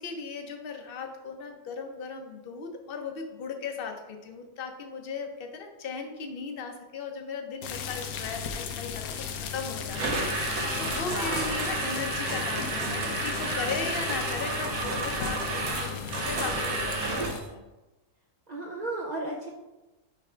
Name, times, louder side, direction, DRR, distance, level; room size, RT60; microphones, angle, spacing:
voice 1, 0.0-17.6, left 5 dB, 50° left, 4 dB, 0.8 m, -37 dB
sound 1, 7.6-17.4, left 7 dB, 75° left, 1.1 m, -36 dB
sound 2, 9.9-17.5, right 2 dB, 75° right, 1.7 m, -31 dB
voice 2, 11.1-11.5 13.5-14.0 18.5-19.5, right 2 dB, 55° right, -2 dB, 0.4 m, -35 dB
5.8 x 3.5 x 4.9 m, 1.1 s
omnidirectional pair, 1.6 m